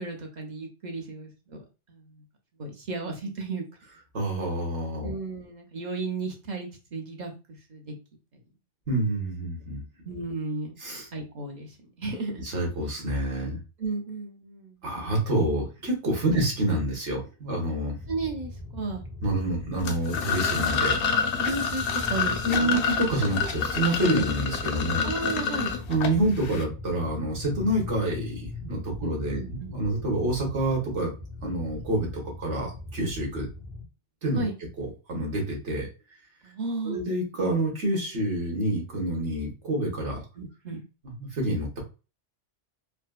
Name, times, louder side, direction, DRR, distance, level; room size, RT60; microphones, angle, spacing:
voice 1, 0.0-2.2 2.6-3.7 5.0-7.3 7.7-8.0 10.0-10.8 11.1-12.4 13.8-14.8 18.1-19.0 21.4-22.8 24.2-24.3 25.0-25.7 29.0-29.7 34.4-34.5 36.4-37.0 40.4-40.8, right 3 dB, 45° right, 1 dB, 0.9 m, -34 dB
voice 2, 4.1-5.2 8.9-9.8 10.8-11.1 12.4-13.6 14.8-18.0 19.2-21.0 22.4-25.1 25.9-31.1 31.4-33.5 34.2-34.5 34.8-35.9 36.8-40.2 41.0-41.8, right 1 dB, 85° right, -1 dB, 1.7 m, -27 dB
sound 1, 18.0-33.8, left 2 dB, ahead, 0.6 m, -40 dB
sound 2, 19.8-26.6, left 6 dB, 60° left, 0.7 m, -28 dB
4.2 x 2.3 x 2.3 m, 0.31 s
omnidirectional pair, 1.2 m